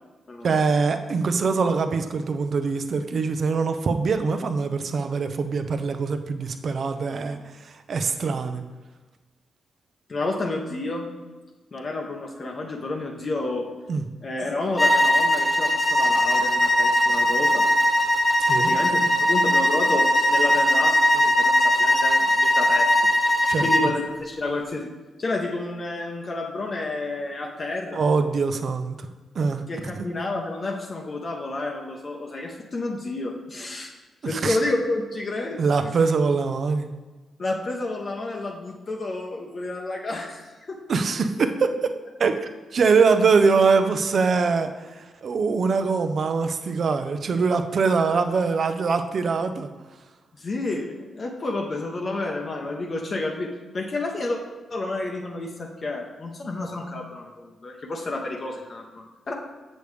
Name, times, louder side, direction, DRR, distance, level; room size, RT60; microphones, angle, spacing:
voice 1, 0.4-8.6 13.9-14.0 18.5-18.7 23.5-23.7 27.9-29.0 29.3-29.6 29.9-30.1 34.3-34.6 35.6-36.9 40.9-41.9 42.2-44.7 45.0-49.7, right 4 dB, 60° right, 8 dB, 0.6 m, -23 dB
voice 2, 10.1-11.1 11.7-13.7 14.2-17.7 18.5-22.9 23.6-24.9 25.2-28.0 29.7-33.9 34.3-35.9 37.4-40.8 50.4-54.4 54.7-59.3, left 2 dB, 45° left, 0 dB, 0.8 m, -30 dB
sound 1, 14.8-23.9, left 1 dB, 25° left, 1.0 m, -20 dB
6.9 x 6.4 x 3.2 m, 1.2 s
cardioid pair, 65°, 0 cm